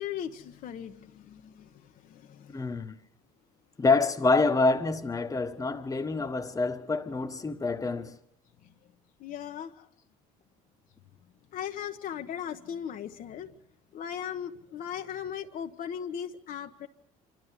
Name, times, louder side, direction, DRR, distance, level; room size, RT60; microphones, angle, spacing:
voice 1, 0.0-2.8 9.2-9.9 11.5-13.5 13.9-16.9, left 9 dB, 55° left, 1.1 m, -38 dB
voice 2, 2.5-2.9 3.8-8.1, left 3 dB, 20° left, 1.5 m, -26 dB
26.5 x 12.5 x 8.2 m
supercardioid pair, 85°, 16 cm